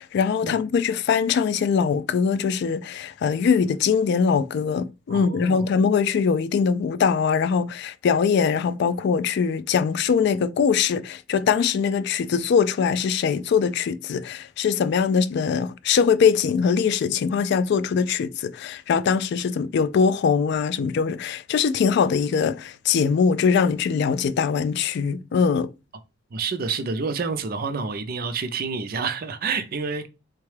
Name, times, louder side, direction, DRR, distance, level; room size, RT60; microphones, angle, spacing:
voice 1, 0.0-25.7, left 6 dB, 60° left, 0.3 m, -22 dB
voice 2, 5.1-5.6 26.3-30.1, right 5 dB, 50° right, 0.5 m, -28 dB
3.8 x 2.2 x 3.2 m
head